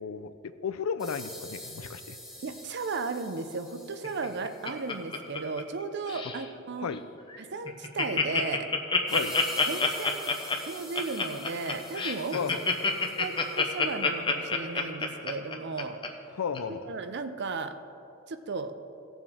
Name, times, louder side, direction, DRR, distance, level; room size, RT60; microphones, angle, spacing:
voice 1, 0.0-2.2 6.8-7.0 9.1-9.4 12.3-12.6 16.3-16.9, left 6 dB, 75° left, 12 dB, 0.5 m, -34 dB
sound 1, 1.0-4.8 9.1-13.8, equal, 5° right, 1.4 m, -46 dB
voice 2, 2.4-6.9 7.4-8.7 9.7-10.3 10.7-12.5 13.2-16.0 16.8-17.8 18.3-18.7, right 4 dB, 55° right, 9 dB, 0.6 m, -35 dB
Laughter, 4.0-5.8 6.1-6.4 6.9-7.0 7.3-7.4 7.6-16.1 16.5-16.6, left 4 dB, 25° left, 0.8 m, -27 dB
17.0 x 7.2 x 3.6 m, 2.9 s
head